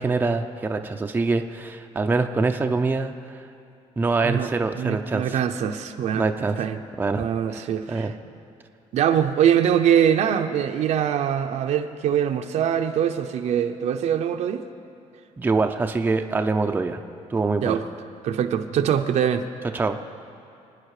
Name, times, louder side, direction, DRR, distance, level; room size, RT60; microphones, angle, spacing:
voice 1, 0.0-3.1 4.0-5.4 6.1-6.6 7.0-7.3 7.5-8.1 15.4-17.0 17.3-17.8 19.7-20.0, right 3 dB, 15° right, 5 dB, 0.6 m, -24 dB
voice 2, 4.2-6.3 6.6-6.8 7.2-8.1 8.9-14.6 17.6-17.8 18.2-19.4, right 9 dB, 60° right, 5 dB, 0.7 m, -23 dB
27.0 x 9.8 x 4.9 m, 2.6 s
cardioid pair, 160°, 13 cm